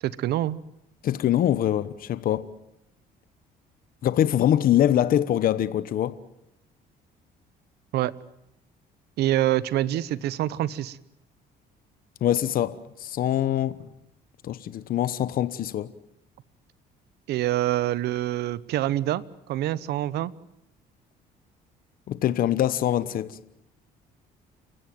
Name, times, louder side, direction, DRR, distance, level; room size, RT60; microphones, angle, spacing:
voice 1, 0.0-0.6 7.9-8.1 9.2-11.0 17.3-19.2 19.5-20.3, right 14 dB, 75° right, 1.0 m, -26 dB
voice 2, 1.0-2.5 4.0-6.1 12.2-13.9 14.4-15.9 22.1-23.4, left 11 dB, 60° left, 1.1 m, -24 dB
29.5 x 16.0 x 9.2 m
cardioid pair, 110°, 17 cm